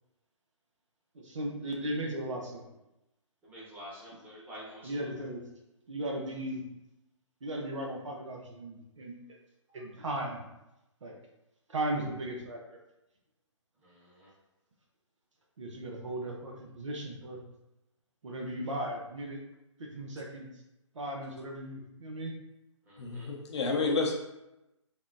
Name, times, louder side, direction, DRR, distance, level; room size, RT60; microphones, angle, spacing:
voice 1, 1.1-2.6 4.8-5.4 5.9-6.6 7.4-9.2 9.7-10.4 11.0-11.2 11.7-12.8 15.6-17.4 18.2-19.4 19.8-20.5 20.9-22.3, right 1 dB, 75° right, 0 dB, 0.7 m, -36 dB
voice 2, 3.4-5.2 9.7-9.9 13.8-14.3 22.8-23.3, equal, 10° right, -6 dB, 0.9 m, -49 dB
voice 3, 23.0-24.1, left 3 dB, 60° left, -1 dB, 0.7 m, -30 dB
3.6 x 2.1 x 2.5 m, 0.92 s
figure-of-eight pair, 135°, 16 cm